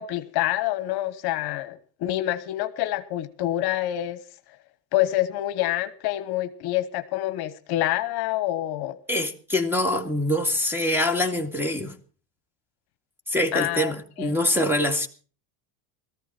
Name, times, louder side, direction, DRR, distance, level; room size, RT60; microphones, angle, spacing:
voice 1, 0.0-4.2 4.9-9.0 13.5-13.9 14.2-14.3, left 14 dB, 55° left, 1.1 m, -27 dB
voice 2, 9.1-11.9 13.3-15.1, left 1 dB, 5° right, 2.1 m, -24 dB
18.0 x 14.0 x 4.4 m
supercardioid pair, 120°, 47 cm